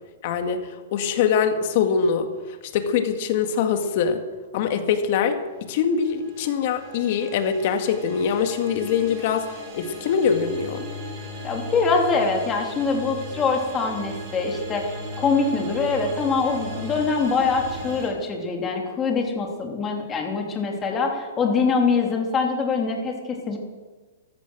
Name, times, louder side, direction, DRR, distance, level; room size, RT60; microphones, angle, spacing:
voice 1, 0.2-4.2 4.5-10.8, left 7 dB, 50° left, 6 dB, 2.1 m, -23 dB
sound 1, 5.8-18.1, equal, 35° right, 6.2 m, -37 dB
voice 2, 11.4-23.6, left 4 dB, 20° left, 1 dB, 3.2 m, -24 dB
15.0 x 13.5 x 6.4 m, 1.3 s
hypercardioid pair, 145°, 0 cm